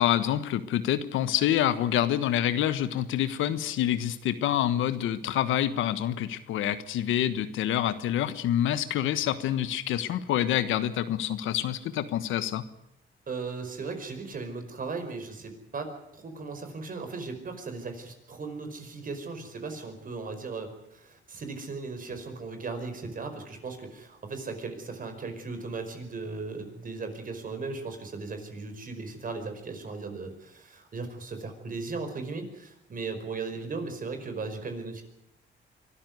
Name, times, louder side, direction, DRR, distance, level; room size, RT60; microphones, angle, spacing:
voice 1, 0.0-12.6, left 11 dB, 85° left, 12 dB, 1.4 m, -27 dB
voice 2, 13.3-35.0, right 4 dB, 45° right, 7 dB, 5.1 m, -37 dB
24.0 x 13.5 x 9.6 m, 0.82 s
cardioid pair, 90°, 20 cm